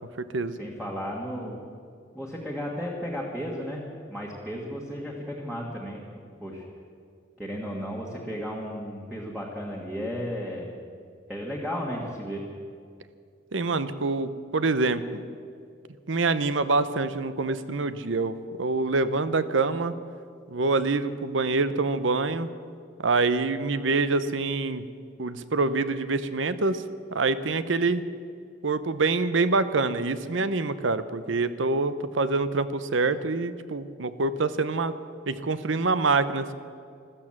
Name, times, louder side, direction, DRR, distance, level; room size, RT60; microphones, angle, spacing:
voice 1, 0.6-1.6 2.1-3.8 4.1-6.1 6.4-6.6 7.4-10.7 11.3-12.4, equal, 5° right, -3 dB, 1.7 m, -34 dB
voice 2, 13.5-15.2 16.1-19.9 20.5-22.5 23.0-24.9 25.2-26.8 27.1-28.0 28.6-34.9 35.3-36.5, right 3 dB, 80° right, 13 dB, 0.8 m, -26 dB
14.5 x 13.5 x 7.4 m, 2.3 s
head